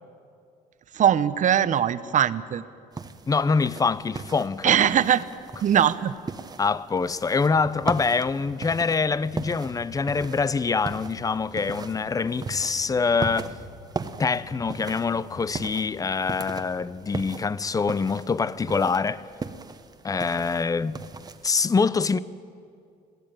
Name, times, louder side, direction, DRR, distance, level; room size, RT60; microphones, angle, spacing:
voice 1, 0.9-2.6 4.6-5.3 5.6-6.1, right 9 dB, 50° right, 0.8 m, -21 dB
sound 1, 2.9-21.5, right 4 dB, 25° right, 1.1 m, -38 dB
voice 2, 3.3-4.8 6.6-13.5 14.2-19.2 20.0-21.0 21.4-22.2, left 4 dB, 20° left, 0.6 m, -25 dB
sound 2, 7.0-16.8, left 2 dB, 60° left, 4.5 m, -48 dB
22.5 x 15.5 x 9.2 m
cardioid pair, 110°, 17 cm